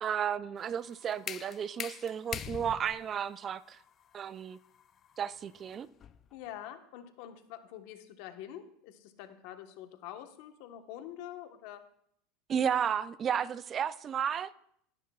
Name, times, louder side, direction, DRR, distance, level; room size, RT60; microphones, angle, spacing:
voice 1, 0.0-3.8 4.1-4.6 5.2-5.9 12.5-14.5, right 8 dB, 30° right, 17 dB, 0.4 m, -33 dB
sound 1, 0.6-6.3, left 9 dB, 30° left, 0.4 m, -44 dB
voice 2, 6.3-11.8, left 11 dB, 65° left, 7 dB, 1.2 m, -46 dB
17.5 x 10.5 x 2.4 m, 0.68 s
supercardioid pair, 130°, 0 cm